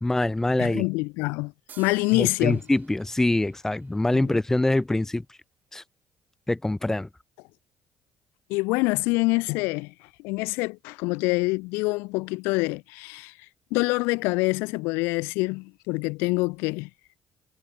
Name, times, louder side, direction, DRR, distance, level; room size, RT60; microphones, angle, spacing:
voice 1, 0.0-0.9 2.1-5.2 5.7-5.8 6.5-7.1, left 2 dB, 10° left, 0.6 m, -24 dB
voice 2, 0.6-2.6 4.1-4.3 8.5-9.9 10.2-13.3 13.7-16.9, left 26 dB, 85° left, 0.9 m, -26 dB
sound 1, 1.7-5.2, right 7 dB, 50° right, 5.1 m, -55 dB
supercardioid pair, 65°, 4 cm